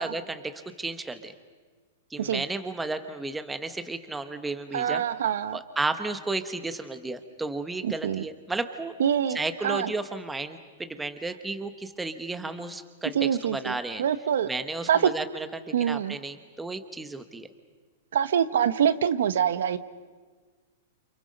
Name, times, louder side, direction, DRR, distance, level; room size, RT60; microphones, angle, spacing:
voice 1, 0.0-1.3 2.1-5.0 5.5-8.9 9.3-14.0 14.5-17.5, right 3 dB, 5° right, 9 dB, 1.0 m, -33 dB
voice 2, 4.7-5.6 7.8-8.2 9.0-9.4 9.6-9.9 13.1-14.5 14.9-15.0 15.7-16.2 18.1-19.8, right 9 dB, 80° right, 13 dB, 1.1 m, -25 dB
29.5 x 28.5 x 5.3 m, 1.4 s
supercardioid pair, 165°, 0 cm